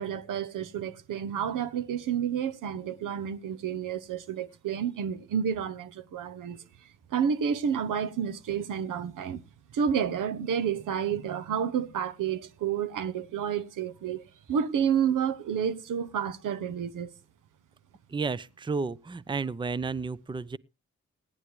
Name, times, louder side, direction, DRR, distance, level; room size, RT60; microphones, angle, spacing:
voice 1, 0.0-6.6 7.1-9.4 9.7-17.1, right 8 dB, 80° right, 0.8 m, -30 dB
voice 2, 18.1-20.6, right 4 dB, 15° right, 0.5 m, -32 dB
17.0 x 11.0 x 3.1 m
supercardioid pair, 40°, 32 cm